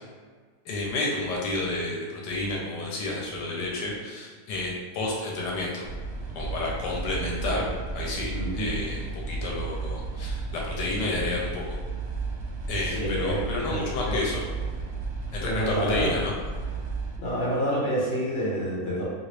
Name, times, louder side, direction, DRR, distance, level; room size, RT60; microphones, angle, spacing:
voice 1, 0.7-5.8 6.3-7.6 7.9-11.8 12.7-14.4 15.3-16.3, left 2 dB, 85° left, -2 dB, 1.2 m, -30 dB
sound 1, 5.8-17.2, right 3 dB, 75° right, 0.6 m, -33 dB
voice 2, 8.3-8.7 12.9-13.4 13.7-13.8 14.1-14.2 15.4-16.1 17.2-19.0, equal, 40° left, -6 dB, 1.2 m, -28 dB
2.9 x 2.9 x 3.1 m, 1.5 s
omnidirectional pair, 1.8 m